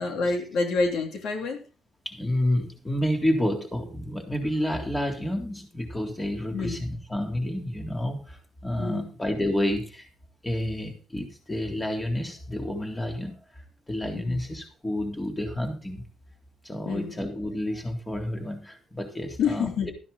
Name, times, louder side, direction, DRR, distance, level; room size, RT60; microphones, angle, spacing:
voice 1, 0.0-1.6 6.5-6.8 8.8-9.1 14.1-14.4 16.8-17.1 19.4-19.9, left 4 dB, 75° left, 4 dB, 3.2 m, -27 dB
voice 2, 2.1-10.1 10.4-16.0 16.6-19.9, left 1 dB, 15° left, 3 dB, 3.5 m, -30 dB
13.5 x 10.0 x 3.9 m, 0.34 s
cardioid pair, 90°, 0 cm